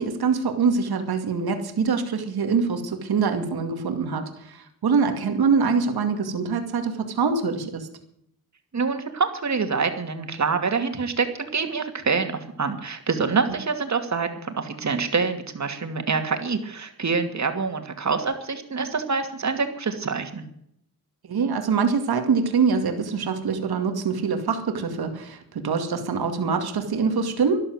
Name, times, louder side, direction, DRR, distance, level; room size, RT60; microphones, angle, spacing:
voice 1, 0.0-4.2 4.8-7.9 21.3-27.6, right 5 dB, 75° right, 6 dB, 2.4 m, -24 dB
voice 2, 8.7-20.5, right 4 dB, 45° right, 6 dB, 2.6 m, -26 dB
13.0 x 11.5 x 7.9 m, 0.73 s
cardioid pair, 75°, 38 cm